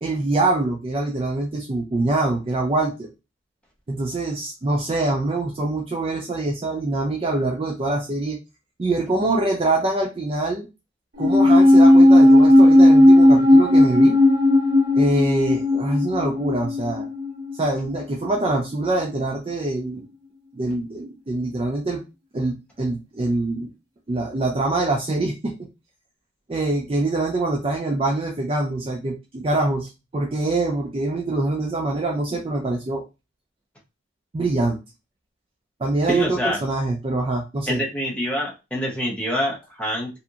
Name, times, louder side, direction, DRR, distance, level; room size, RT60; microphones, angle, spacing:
voice 1, 0.0-3.1 3.9-8.4 8.8-10.7 11.2-14.2 14.9-17.1 17.6-20.1 20.5-22.0 22.3-23.7 24.1-25.5 26.5-33.0 34.3-34.8 35.8-37.8, right 2 dB, 30° right, 1 dB, 0.3 m, -24 dB
sound 1, 11.2-17.8 18.0-18.1, left 1 dB, 50° right, 1.0 m, -14 dB
voice 2, 36.1-36.6 37.7-40.1, equal, 5° left, -3 dB, 0.8 m, -26 dB
2.7 x 2.6 x 2.3 m, 0.27 s
head